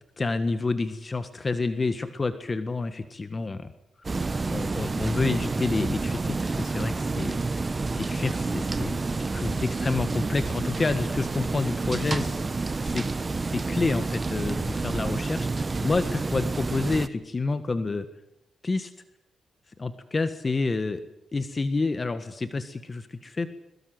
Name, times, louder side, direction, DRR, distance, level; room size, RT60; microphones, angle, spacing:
voice 1, 0.2-3.7 4.5-7.4 7.9-13.1 13.4-18.1 18.6-18.9 19.8-21.0 21.3-23.5, left 3 dB, 30° left, 10 dB, 1.7 m, -29 dB
sound 1, 4.0-17.1, right 3 dB, 30° right, 1.0 m, -29 dB
22.0 x 22.0 x 7.9 m, 0.81 s
cardioid pair, 90°, 0 cm